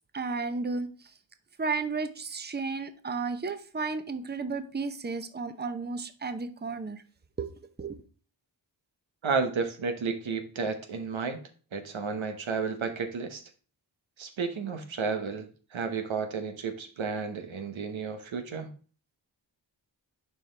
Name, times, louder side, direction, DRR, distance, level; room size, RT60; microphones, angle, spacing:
voice 1, 0.1-0.9 1.6-7.0 7.4-7.5 7.8-8.0, right 4 dB, 20° right, 0.7 m, -33 dB
voice 2, 9.2-11.4 11.7-13.4 14.2-15.4 15.7-18.7, right 5 dB, 85° right, 1.1 m, -32 dB
7.0 x 4.6 x 3.4 m
cardioid pair, 45°, 46 cm